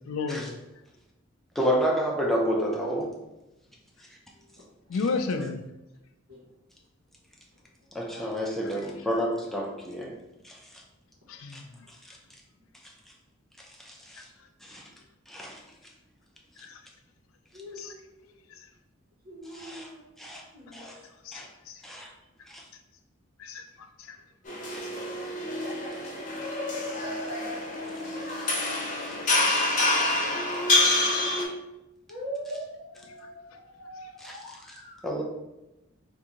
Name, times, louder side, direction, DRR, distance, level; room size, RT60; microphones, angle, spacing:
voice 1, 0.1-0.6 4.9-5.6 11.3-11.7 14.2-14.3 16.6-16.8 17.7-17.9 18.5-18.7 21.2-21.8 23.4-23.7 24.0-24.2 29.3-29.4 33.1-33.3 34.0-34.1, left 4 dB, 90° left, 7 dB, 0.4 m, -33 dB
voice 2, 1.6-3.1 7.9-10.2 10.4-10.5 11.5-11.6 13.8-14.2 14.6-14.8 15.3-15.6 19.5-19.9 20.2-20.4 20.7-21.0 21.3-21.5 21.8-22.1 22.5-22.6 24.7-24.8 34.2-34.4 35.0-35.2, equal, ahead, -2 dB, 0.5 m, -30 dB
voice 3, 17.5-18.0 19.3-20.0 20.5-20.9 32.1-35.0, right 1 dB, 80° right, -9 dB, 0.9 m, -41 dB
sound 1, 24.5-31.5, left 2 dB, 40° left, 0.7 m, -27 dB
3.6 x 2.6 x 2.9 m, 0.96 s
head